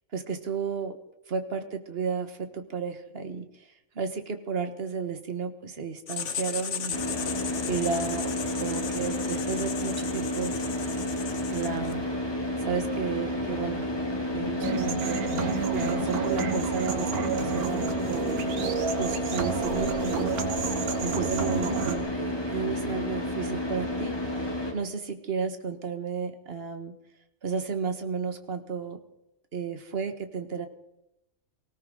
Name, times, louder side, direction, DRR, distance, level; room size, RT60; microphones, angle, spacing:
voice 1, 0.1-1.0 1.3-7.0 7.7-8.3 8.6-10.6 11.5-12.0 12.6-13.8 14.3-15.3 15.7-18.4 19.0-20.4 21.0-27.0 27.4-29.0 29.5-30.7, right 6 dB, 45° right, 8 dB, 1.7 m, -33 dB
Writing, 6.1-12.0, left 7 dB, 55° left, 1.3 m, -36 dB
Car / Idling, 6.9-24.7, left 1 dB, 15° left, 2.7 m, -31 dB
sound 1, 14.6-22.0, right 6 dB, 90° right, 1.8 m, -30 dB
19.5 x 17.0 x 3.9 m, 0.86 s
omnidirectional pair, 1.5 m